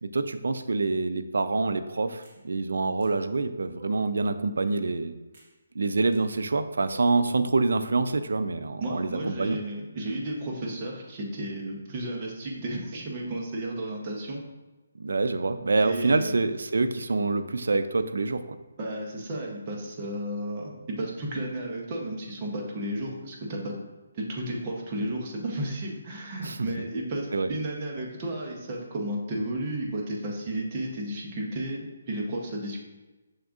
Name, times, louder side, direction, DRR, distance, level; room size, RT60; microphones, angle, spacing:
voice 1, 0.0-5.1 5.8-9.6 15.0-18.6 26.4-26.7 27.3-27.5, right 3 dB, 80° right, 11 dB, 0.3 m, -26 dB
sound 1, 2.2-2.4 3.0-3.1 3.7-4.3 5.3-5.5 6.1-6.2 6.8-7.4, right 2 dB, 45° right, 1.0 m, -50 dB
voice 2, 8.8-14.4 15.8-16.3 18.8-23.7 24.1-32.8, right 1 dB, 25° right, -1 dB, 0.7 m, -33 dB
6.4 x 3.5 x 2.4 m, 1.2 s
hypercardioid pair, 170°, 0 cm